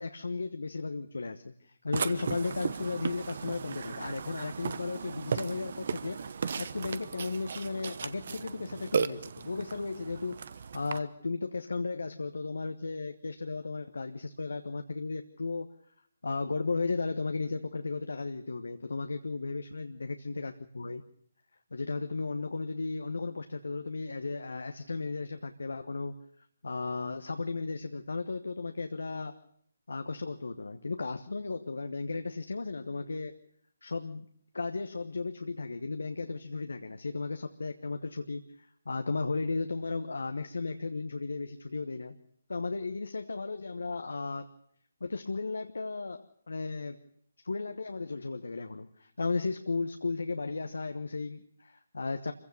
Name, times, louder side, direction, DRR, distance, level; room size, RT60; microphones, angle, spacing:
voice 1, 0.0-6.2 6.6-10.4 10.7-15.7 16.2-21.0 21.7-26.2 26.6-29.4 29.9-33.4 33.8-34.3 34.5-42.2 42.5-44.5 45.0-47.0 47.4-52.3, left 3 dB, 70° left, 7 dB, 1.2 m, -35 dB
Burping eructation, 1.9-11.0, right 6 dB, 50° right, 1.0 m, -36 dB
25.5 x 16.0 x 6.9 m, 0.66 s
figure-of-eight pair, 145°, 0 cm